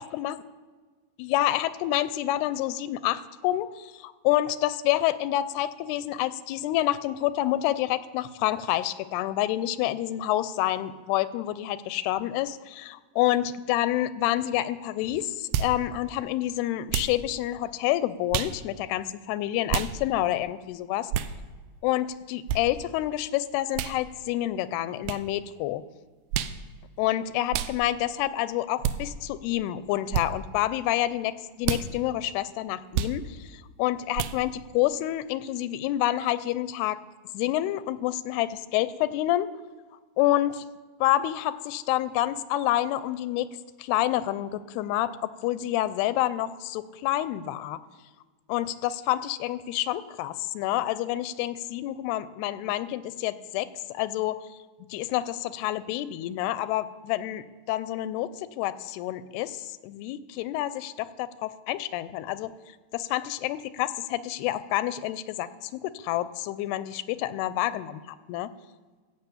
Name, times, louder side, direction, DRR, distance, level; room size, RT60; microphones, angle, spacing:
voice 1, 0.0-0.4 1.2-21.1 21.8-25.8 27.0-37.0 37.3-39.5 40.2-40.7 41.0-43.5 43.8-47.8 48.5-54.4 54.9-62.5 62.9-68.0 68.3-68.5, left 14 dB, 85° left, 15 dB, 2.6 m, -28 dB
sound 1, 15.5-15.8 16.9-17.2 18.3-18.6 19.7-19.9 21.1-21.3 22.5-22.6 23.7-24.0 25.0-25.2 26.3-26.6 27.5-27.7 28.8-29.0 30.1-30.3 31.6-31.9 32.9-33.2 34.1-34.4, right 10 dB, 85° right, 2.6 m, -28 dB
15.0 x 6.9 x 8.3 m, 1.4 s
omnidirectional pair, 4.5 m